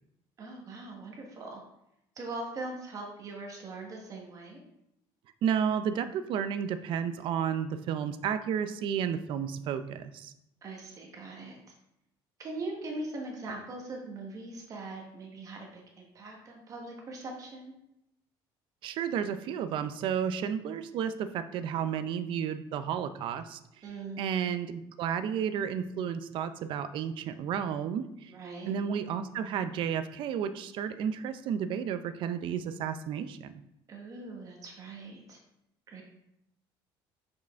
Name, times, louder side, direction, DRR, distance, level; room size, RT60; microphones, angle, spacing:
voice 1, 0.4-1.6 2.1-4.6 10.6-11.7 12.4-17.7 23.8-24.3 28.3-28.8 33.9-35.4 35.9-36.0, right 2 dB, 35° right, 0 dB, 1.1 m, -41 dB
voice 2, 5.4-10.3 18.8-23.6 24.2-28.3 28.7-33.6, right 8 dB, 55° right, 11 dB, 0.5 m, -32 dB
6.3 x 4.9 x 3.5 m, 0.82 s
cardioid pair, 160°, 10 cm